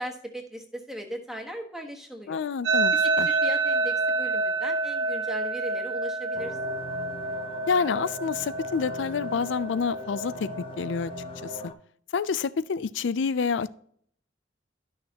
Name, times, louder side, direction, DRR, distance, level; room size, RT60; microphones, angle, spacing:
voice 1, 0.0-2.4 3.0-6.6, right 1 dB, 5° right, 2 dB, 1.2 m, -38 dB
voice 2, 2.3-3.3 7.7-10.5 10.8-11.1 11.4-11.7 12.1-13.7, left 5 dB, 80° left, 17 dB, 0.4 m, -28 dB
sound 1, 2.6-11.7, right 3 dB, 75° right, 1.9 m, -28 dB
sound 2, 6.3-11.7, left 2 dB, 30° left, 0.6 m, -41 dB
12.0 x 6.5 x 2.9 m, 0.62 s
head